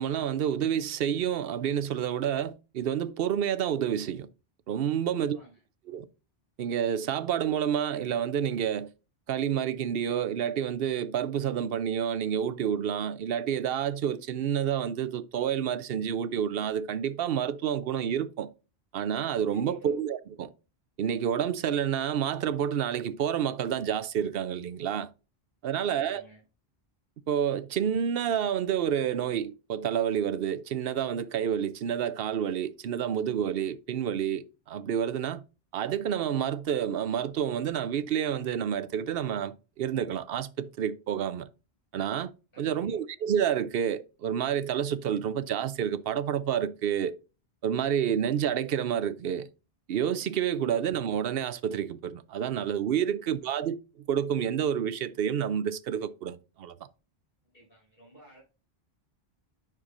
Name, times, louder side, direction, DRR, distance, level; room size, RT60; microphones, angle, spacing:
voice 1, 0.0-4.3 4.7-5.4 5.9-6.1 6.6-8.9 9.3-18.5 18.9-20.5 21.0-25.1 25.6-26.2 27.3-35.4 35.7-41.5 41.9-42.3 42.6-47.2 47.6-49.5 49.9-53.8 54.1-56.8, right 9 dB, 70° right, 0.8 m, -29 dB
voice 2, 5.2-5.6 19.5-19.9 25.8-26.4 42.5-43.0 57.4-58.4, right 1 dB, 60° left, 4.9 m, -54 dB
9.9 x 5.9 x 2.5 m
omnidirectional pair, 1.1 m